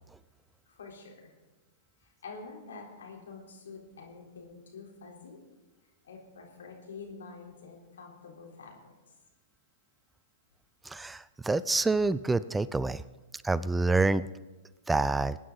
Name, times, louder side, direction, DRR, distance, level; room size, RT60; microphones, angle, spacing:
voice 1, 0.7-1.3 2.0-5.4 6.0-8.8, left 4 dB, 80° left, -1 dB, 3.8 m, -47 dB
voice 2, 10.8-13.0 13.4-14.3 14.9-15.4, right 3 dB, 10° right, 17 dB, 0.4 m, -27 dB
22.0 x 9.5 x 4.0 m, 1.2 s
hypercardioid pair, 110°, 0 cm